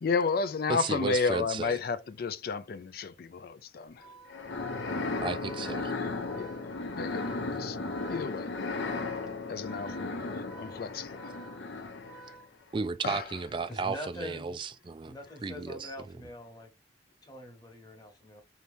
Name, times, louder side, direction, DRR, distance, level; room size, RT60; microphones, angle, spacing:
voice 1, 0.0-4.2 5.9-7.8 8.1-8.5 9.5-11.5 12.3-12.4 13.0-13.3, left 4 dB, 55° left, 0.4 m, -33 dB
voice 2, 0.7-1.7 5.2-5.9 12.7-15.2 15.4-15.9, right 4 dB, 25° right, 0.3 m, -34 dB
Organ, 3.9-13.0, right 3 dB, ahead, 0.9 m, -53 dB
sound 1, 4.3-12.3, left 3 dB, 75° left, 0.7 m, -35 dB
voice 3, 13.7-14.5 15.1-16.7 17.2-18.4, left 1 dB, 20° left, 1.1 m, -43 dB
4.0 x 2.9 x 3.4 m
head